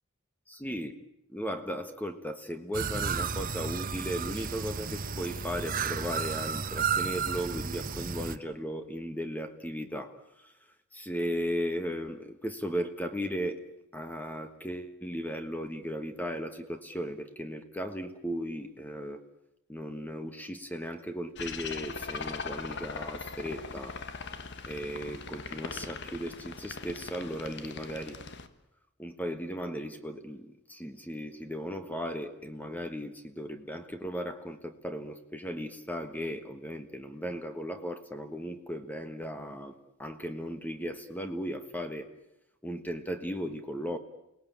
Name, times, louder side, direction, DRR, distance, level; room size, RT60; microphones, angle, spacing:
voice 1, 0.5-0.9 1.3-13.6 13.9-19.2 19.7-24.0 24.7-28.2 29.0-42.1 42.6-44.0, equal, 10° left, 7 dB, 1.5 m, -36 dB
sound 1, 2.7-8.4, right 6 dB, 40° right, 1.2 m, -33 dB
sound 2, 21.4-28.5, left 4 dB, 60° left, 1.7 m, -40 dB
29.5 x 19.0 x 8.7 m, 0.86 s
head